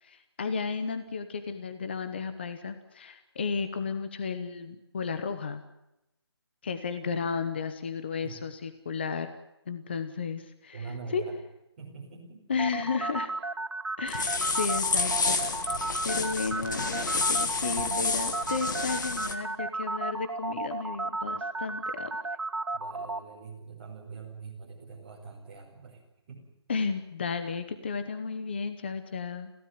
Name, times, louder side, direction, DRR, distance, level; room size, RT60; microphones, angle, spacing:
voice 1, 0.0-5.6 6.6-9.3 9.7-11.2 12.5-13.3 14.0-15.6 16.0-22.2 26.7-29.5, left 5 dB, 25° left, 9 dB, 0.9 m, -33 dB
voice 2, 10.7-11.3 11.8-12.5 22.7-26.0 26.3-26.4, right 5 dB, 20° right, -2 dB, 5.0 m, -43 dB
sound 1, 12.6-23.2, right 3 dB, 80° right, 2.9 m, -33 dB
sound 2, 14.1-19.3, left 4 dB, 45° left, 2.1 m, -30 dB
22.0 x 16.5 x 9.4 m, 0.89 s
hypercardioid pair, 175°, 14 cm